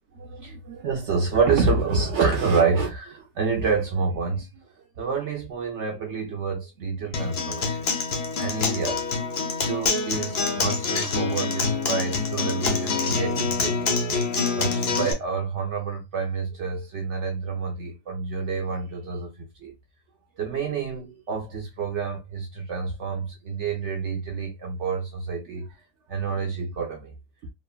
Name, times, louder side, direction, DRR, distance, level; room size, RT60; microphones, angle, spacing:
voice 1, 0.1-4.5 5.0-7.9 8.4-9.0 9.7-14.1 14.6-19.3 19.6-19.7 20.4-25.7 26.1-27.1, right 5 dB, 65° right, 0.7 m, -28 dB
Acoustic guitar, 7.1-15.1, left 4 dB, 65° left, 0.6 m, -26 dB
3.0 x 2.1 x 2.2 m
omnidirectional pair, 1.7 m